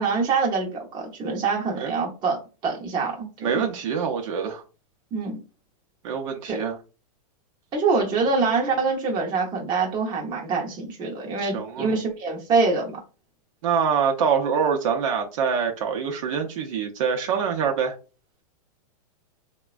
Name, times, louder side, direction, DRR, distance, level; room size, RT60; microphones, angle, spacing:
voice 1, 0.0-3.3 5.1-5.4 6.5-6.6 7.7-13.0, right 4 dB, 25° right, 0.8 m, -25 dB
voice 2, 3.4-4.6 6.0-6.8 11.4-11.9 13.6-17.9, right 6 dB, 55° right, 0.6 m, -25 dB
3.2 x 2.2 x 2.3 m
supercardioid pair, 150°, 19 cm